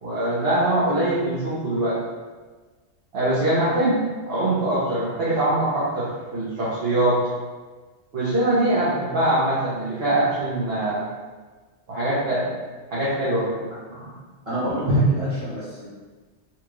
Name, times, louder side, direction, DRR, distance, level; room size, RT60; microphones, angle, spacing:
voice 1, 0.0-2.0 3.1-7.2 8.1-11.0 11.9-12.5 12.9-13.6 13.9-14.1 14.9-15.0, right 1 dB, 60° right, -11 dB, 1.2 m, -23 dB
voice 2, 14.4-15.9, equal, 30° right, -9 dB, 1.3 m, -29 dB
4.4 x 2.4 x 3.0 m, 1.4 s
omnidirectional pair, 1.2 m